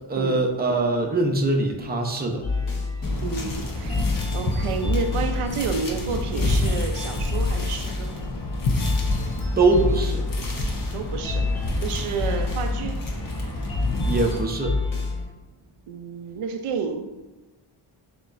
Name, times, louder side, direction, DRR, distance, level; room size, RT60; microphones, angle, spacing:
voice 1, 0.1-2.4 9.6-10.3 14.1-14.8, right 2 dB, 20° right, 2 dB, 0.6 m, -22 dB
sound 1, 2.4-15.2, left 4 dB, 70° left, 1.3 m, -29 dB
sound 2, 3.0-14.4, left 1 dB, 40° left, 0.8 m, -28 dB
voice 2, 3.2-4.1 4.3-8.1 10.9-13.0 15.9-17.1, right 5 dB, 80° right, 6 dB, 0.6 m, -30 dB
6.8 x 3.0 x 2.5 m, 1.1 s
wide cardioid pair, 105°, 50 cm